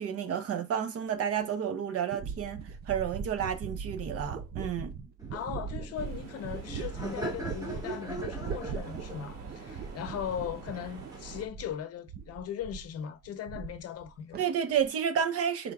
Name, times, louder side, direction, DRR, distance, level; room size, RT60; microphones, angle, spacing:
voice 1, 0.0-4.9 14.4-15.7, right 8 dB, 50° right, 0.9 m, -31 dB
sound 1, 1.4-1.5 2.1-11.8 12.1-12.9 13.2-14.1 14.3-14.9, right 6 dB, 35° right, 0.4 m, -40 dB
Laughter, 5.2-11.5, right 1 dB, 10° right, 1.6 m, -42 dB
voice 2, 5.3-14.4, left 9 dB, 50° left, 0.7 m, -39 dB
sound 2, 5.9-11.5, right 4 dB, 85° right, 2.4 m, -48 dB
5.1 x 3.8 x 2.3 m
cardioid pair, 145°, 31 cm